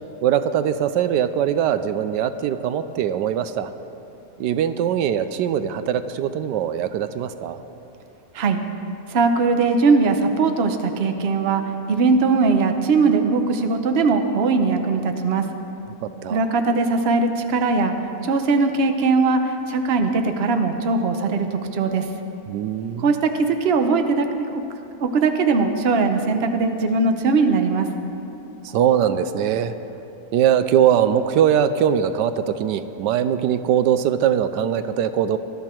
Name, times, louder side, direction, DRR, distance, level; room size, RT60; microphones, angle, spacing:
voice 1, 0.2-3.7 4.4-7.6 16.0-16.5 22.5-23.1 28.6-29.8 30.3-35.4, right 9 dB, 85° right, 11 dB, 1.2 m, -21 dB
voice 2, 9.1-15.5 16.3-22.1 23.0-24.6 25.0-27.9, right 4 dB, 45° right, 6 dB, 0.9 m, -20 dB
19.5 x 12.5 x 4.5 m, 2.9 s
omnidirectional pair, 1.8 m